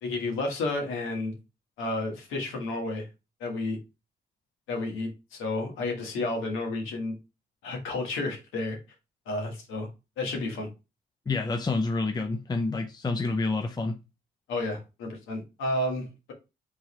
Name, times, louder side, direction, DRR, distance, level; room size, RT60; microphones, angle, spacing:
voice 1, 0.0-1.4 1.8-3.1 3.4-3.8 4.7-7.1 7.6-8.8 9.2-9.9 10.2-10.7 14.5-16.3, left 2 dB, 90° left, 1.5 m, -31 dB
voice 2, 11.3-13.9, left 3 dB, 20° left, 0.5 m, -28 dB
3.8 x 3.0 x 4.1 m
cardioid pair, 90°, 20 cm